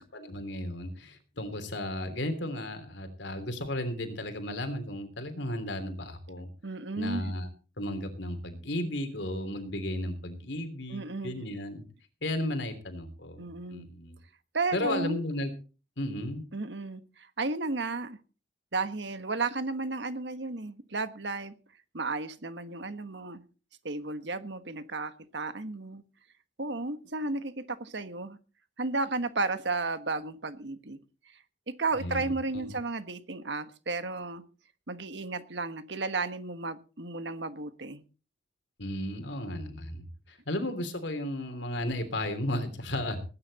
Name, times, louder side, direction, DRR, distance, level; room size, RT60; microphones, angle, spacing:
voice 1, 0.0-6.5 7.0-7.5 7.8-11.8 12.2-14.2 14.7-15.5 16.0-16.4 32.0-32.7 38.8-43.2, left 1 dB, 75° left, 8 dB, 3.1 m, -34 dB
voice 2, 6.6-7.3 10.9-11.4 13.4-13.9 14.5-15.2 16.5-18.2 18.7-21.5 21.9-23.4 23.8-26.0 26.6-27.5 27.8-28.4 28.8-31.0 31.8-34.4 34.9-38.0, right 3 dB, 75° right, 11 dB, 1.4 m, -33 dB
19.5 x 10.0 x 4.2 m, 0.36 s
head